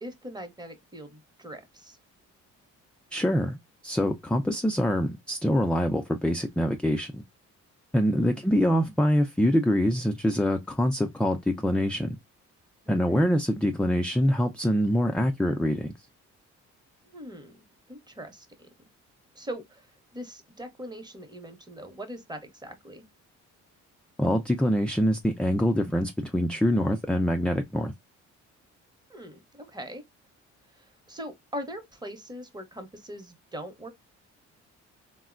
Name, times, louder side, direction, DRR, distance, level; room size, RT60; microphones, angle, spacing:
voice 1, 0.0-2.0 8.1-8.4 13.1-13.3 17.0-18.5 19.3-23.0 29.1-30.0 30.7-33.9, equal, 15° right, 0.8 m, -41 dB
voice 2, 3.1-3.6 3.8-7.2 7.9-12.2 12.9-15.9 24.2-27.9, equal, 5° left, 0.3 m, -25 dB
3.6 x 2.1 x 2.4 m
cardioid pair, 90°, 30 cm